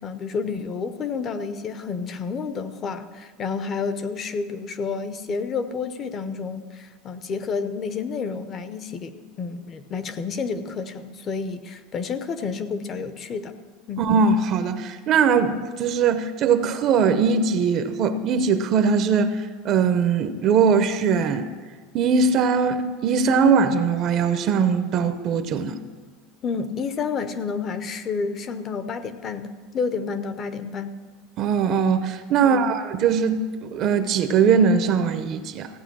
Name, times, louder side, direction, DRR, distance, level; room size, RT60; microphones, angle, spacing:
voice 1, 0.0-13.5 13.9-14.0 26.4-31.0 32.4-32.7, left 5 dB, 25° left, 11 dB, 0.7 m, -30 dB
voice 2, 14.0-21.5 21.9-25.8 31.4-35.7, right 5 dB, 35° right, 10 dB, 0.7 m, -21 dB
15.0 x 9.0 x 6.1 m, 1.5 s
supercardioid pair, 160°, 0 cm